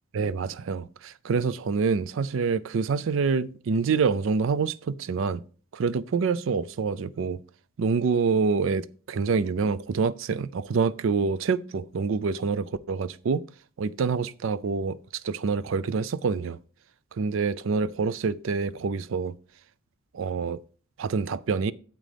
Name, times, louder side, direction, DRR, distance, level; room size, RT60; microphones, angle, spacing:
voice 1, 0.1-5.4 5.7-7.4 7.8-13.4 13.8-15.0 15.2-16.6 17.1-19.3 20.1-20.6 21.0-21.7, right 5 dB, 65° right, 0.4 m, -26 dB
9.0 x 7.5 x 3.3 m
head